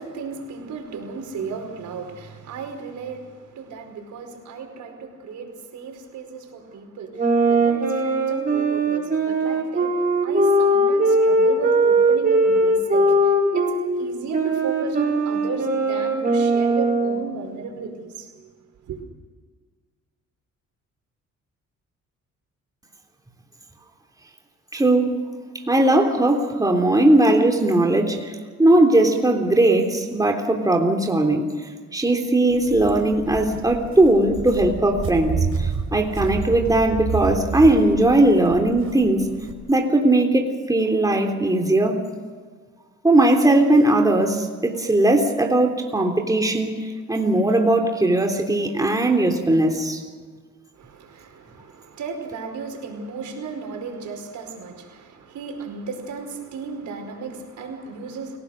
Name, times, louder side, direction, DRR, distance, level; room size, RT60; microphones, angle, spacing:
voice 1, 0.0-18.5 18.8-19.0 50.7-58.4, right 5 dB, 75° right, 4 dB, 5.1 m, -35 dB
sound 1, 7.2-13.9 14.3-17.3, right 1 dB, 30° right, 7.6 m, -20 dB
voice 2, 24.7-25.2 25.7-28.3 28.6-31.5 31.9-39.3 39.7-42.0 43.0-50.0, right 1 dB, 10° right, 2 dB, 3.4 m, -19 dB
Walk footsteps, 32.5-39.5, right 5 dB, 45° right, 4.8 m, -30 dB
29.0 x 17.5 x 6.5 m, 1.5 s
cardioid pair, 90°, 30 cm